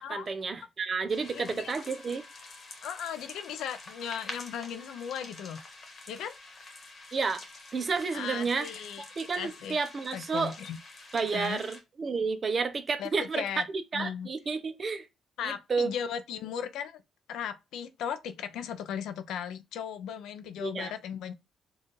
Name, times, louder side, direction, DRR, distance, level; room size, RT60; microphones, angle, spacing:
voice 1, 0.0-2.2 7.1-7.4 7.7-8.7 9.2-10.5 11.1-13.4 13.9-15.1 15.4-15.9 20.6-20.9, right 4 dB, 35° right, 0.5 m, -31 dB
sound 1, 1.1-11.8, left 3 dB, 35° left, 1.2 m, -47 dB
voice 2, 1.3-1.7 2.8-5.6 6.1-6.4 8.1-9.8 10.1-10.8 11.3-11.6 13.0-13.7 13.9-14.3 15.4-17.0 17.3-21.3, left 8 dB, 85° left, 0.4 m, -37 dB
4.5 x 2.3 x 3.1 m
cardioid pair, 130°, 0 cm